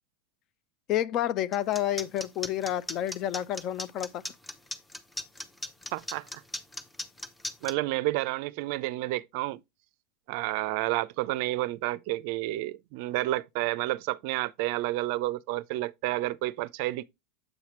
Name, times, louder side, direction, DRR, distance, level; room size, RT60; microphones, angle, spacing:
voice 1, 0.9-4.2, left 12 dB, 45° left, 0.5 m, -29 dB
sound 1, 1.5-7.7, left 1 dB, 10° left, 0.8 m, -37 dB
voice 2, 5.9-6.3 7.6-9.6 10.3-17.0, right 18 dB, 60° right, 0.4 m, -30 dB
7.8 x 5.7 x 3.0 m
hypercardioid pair, 105°, 0 cm